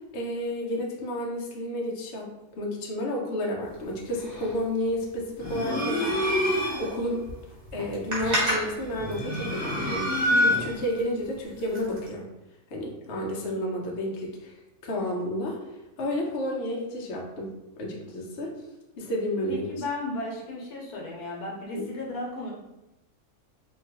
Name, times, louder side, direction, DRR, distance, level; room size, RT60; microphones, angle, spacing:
voice 1, 0.1-2.3 2.6-6.5 6.8-7.2 7.7-12.3 12.7-14.5 14.8-15.6 16.0-18.5 19.0-19.7 21.7-21.9, left 1 dB, 60° left, -2 dB, 0.7 m, -31 dB
sound 1, 3.6-12.1, equal, 55° right, 1.0 m, -36 dB
sound 2, 5.4-7.0 8.9-10.9, left 1 dB, 30° left, 1.2 m, -26 dB
voice 2, 19.5-22.5, left 2 dB, 80° left, -1 dB, 1.2 m, -34 dB
2.8 x 2.2 x 2.8 m, 0.95 s
omnidirectional pair, 1.6 m